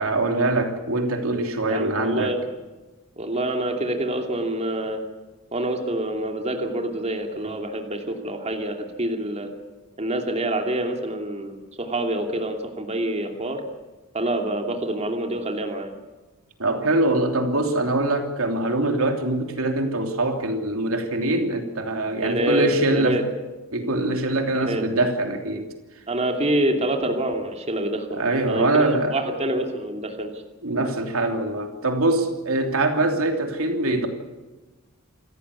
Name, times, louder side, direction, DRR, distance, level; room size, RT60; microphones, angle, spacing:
voice 1, 0.0-2.3 16.6-23.2 23.7-25.7 28.1-29.1 30.6-34.1, right 2 dB, 80° right, 4 dB, 3.2 m, -23 dB
voice 2, 1.7-2.4 3.2-5.0 5.5-9.5 10.0-13.6 14.1-15.9 22.2-23.2 24.6-24.9 26.1-28.2 28.5-30.4, right 1 dB, 30° right, 3 dB, 2.8 m, -26 dB
28.0 x 15.0 x 8.4 m, 1.2 s
head